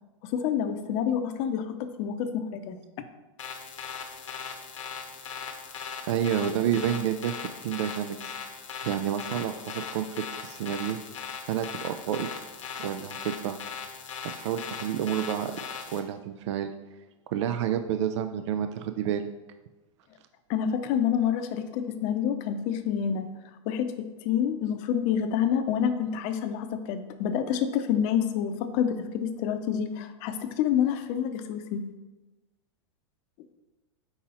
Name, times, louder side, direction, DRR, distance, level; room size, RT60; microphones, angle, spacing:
voice 1, 0.2-2.8 20.5-23.3 23.7-31.8, left 8 dB, 45° left, 9 dB, 0.7 m, -28 dB
sound 1, 3.4-16.0, left 6 dB, 80° left, 1.1 m, -39 dB
voice 2, 6.1-8.5 8.8-11.0 11.5-12.3 12.8-13.6 14.4-15.6 15.9-16.7 17.3-19.3, right 9 dB, 65° right, 9 dB, 0.4 m, -29 dB
5.6 x 4.4 x 4.3 m, 1.1 s
hypercardioid pair, 110°, 16 cm